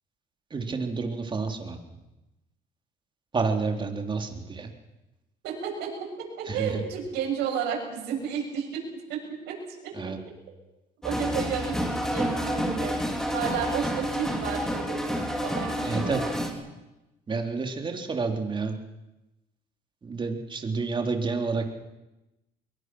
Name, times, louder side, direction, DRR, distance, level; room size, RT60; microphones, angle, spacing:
voice 1, 0.5-1.8 3.3-4.7 6.5-6.8 9.9-10.2 15.8-16.2 17.3-18.8 20.0-21.7, right 4 dB, 30° right, 3 dB, 3.5 m, -29 dB
voice 2, 5.4-5.9 6.2-8.8 9.1-9.2 9.5-9.6 9.8-9.9 11.0-13.0 13.3-15.0 15.4-16.1, right 7 dB, 85° right, 0 dB, 7.9 m, -32 dB
sound 1, 11.0-16.5, equal, 5° left, 4.2 m, -29 dB
24.0 x 22.5 x 6.3 m, 1.0 s
cardioid pair, 110°, 17 cm